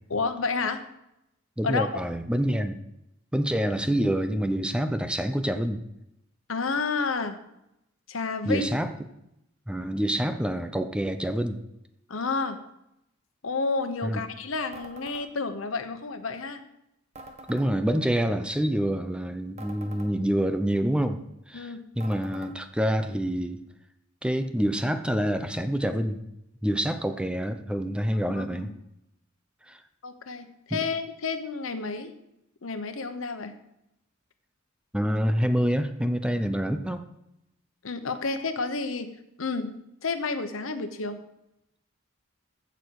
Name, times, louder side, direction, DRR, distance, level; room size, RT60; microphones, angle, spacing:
voice 1, 0.1-0.8 1.6-2.0 6.5-7.4 8.1-8.7 12.1-12.6 13.4-16.6 21.5-21.8 28.1-28.7 30.0-32.1 32.6-33.6 37.8-39.1 39.4-41.2, left 4 dB, 90° left, 9 dB, 1.1 m, -30 dB
voice 2, 1.6-2.8 3.3-5.8 8.4-8.9 9.7-11.6 14.0-14.2 17.5-21.2 21.5-23.6 24.2-26.2 26.6-28.7 29.7-29.8 30.7-30.8 34.9-37.0, equal, 5° right, 9 dB, 0.6 m, -27 dB
sound 1, 14.7-15.3 17.1-17.7 19.6-20.1 22.0-22.5, right 1 dB, 35° right, 1.3 m, -45 dB
15.5 x 6.4 x 4.8 m, 0.84 s
head